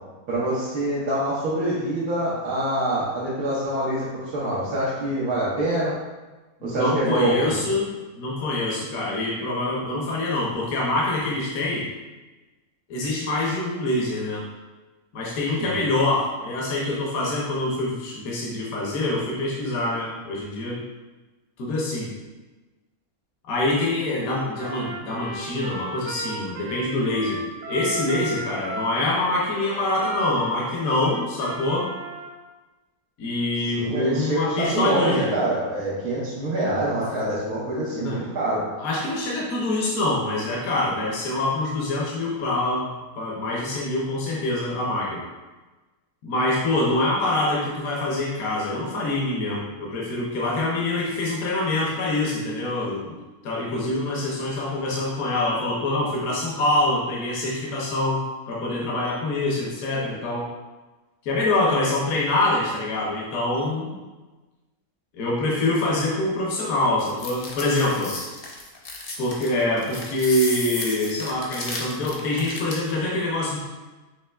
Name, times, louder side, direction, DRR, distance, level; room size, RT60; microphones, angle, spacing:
voice 1, 0.3-6.0 6.6-7.5 15.6-15.7 33.8-38.6, right 1 dB, 90° right, -9 dB, 1.4 m, -25 dB
voice 2, 6.6-11.9 12.9-14.4 15.1-20.8 21.6-22.1 23.5-27.4 27.7-31.9 33.2-35.3 37.9-38.2 38.8-42.9 43.2-45.2 46.2-53.2 53.4-60.5 61.2-64.0 65.1-68.2 69.2-73.6, left 2 dB, 70° left, -4 dB, 1.2 m, -25 dB
Trumpet, 24.6-32.3, right 1 dB, 65° right, 0.9 m, -35 dB
sound 1, 67.0-72.9, left 2 dB, 50° left, 0.7 m, -34 dB
5.5 x 3.1 x 2.3 m, 1.2 s
omnidirectional pair, 1.5 m